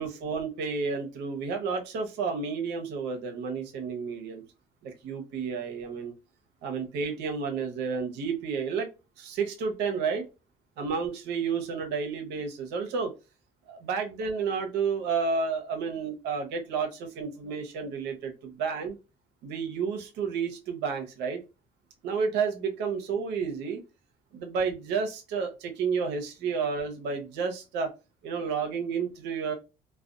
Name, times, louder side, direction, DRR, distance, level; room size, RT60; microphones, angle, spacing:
voice 1, 0.0-4.4 4.8-6.1 6.6-8.9 9.2-10.3 10.8-13.1 13.7-19.0 19.4-21.4 22.0-23.8 24.3-27.9 28.2-29.5, right 5 dB, 85° right, 5 dB, 0.9 m, -31 dB
2.4 x 2.3 x 2.4 m, 0.27 s
cardioid pair, 110°, 17 cm